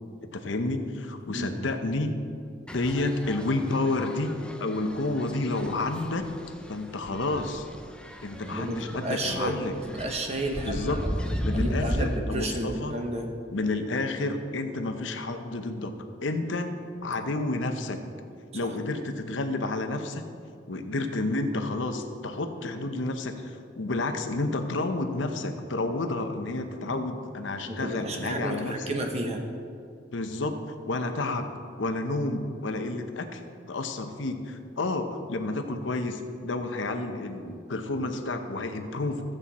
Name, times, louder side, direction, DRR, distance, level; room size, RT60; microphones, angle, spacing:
voice 1, 0.3-2.1 2.7-6.3 6.7-7.7 8.2-9.8 10.6-11.0 11.4-13.0 13.5-16.0 16.2-16.8 17.0-18.0 18.5-20.2 20.7-28.9 30.1-30.6 30.9-31.5 31.8-33.4 33.7-39.2, left 2 dB, 75° left, 7 dB, 0.8 m, -30 dB
sound 1, 2.7-12.2, equal, 5° left, 0.5 m, -36 dB
voice 2, 8.5-9.6 9.9-11.1 11.5-13.3 18.6-18.7 26.8-27.0 27.7-29.4, right 1 dB, 35° right, 2 dB, 1.2 m, -31 dB
14.0 x 7.7 x 4.2 m, 2.4 s
head